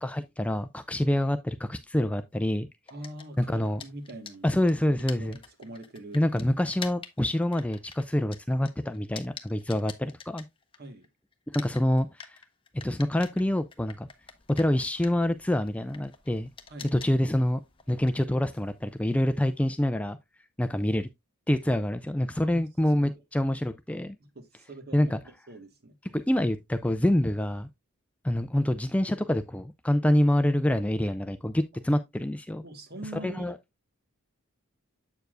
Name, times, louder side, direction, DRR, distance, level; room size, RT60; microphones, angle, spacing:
voice 1, 0.0-2.7 3.4-3.8 4.4-5.4 6.1-10.5 11.5-12.4 12.8-14.1 14.5-16.5 16.9-17.6 17.9-20.2 20.6-21.1 21.5-24.2 24.9-25.2 26.1-27.7 28.2-32.6 33.2-33.6, left 1 dB, 5° left, 0.3 m, -26 dB
sound 1, 2.9-11.1 11.3-19.6, left 6 dB, 25° left, 0.8 m, -47 dB
voice 2, 2.9-4.6 5.0-6.2 10.8-11.1 16.7-16.9 22.3-22.6 24.2-26.2 32.6-33.4, right 1 dB, 45° right, 1.4 m, -44 dB
8.0 x 6.9 x 2.4 m
head